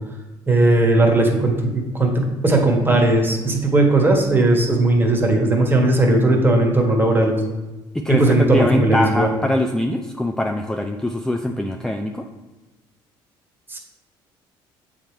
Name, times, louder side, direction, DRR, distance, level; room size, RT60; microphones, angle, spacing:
voice 1, 0.5-7.3 8.1-9.3 13.7-13.8, right 2 dB, 20° right, 2 dB, 1.4 m, -17 dB
voice 2, 7.9-12.3, left 1 dB, 5° left, 4 dB, 0.4 m, -22 dB
7.4 x 3.6 x 4.5 m, 1.1 s
supercardioid pair, 85°, 10 cm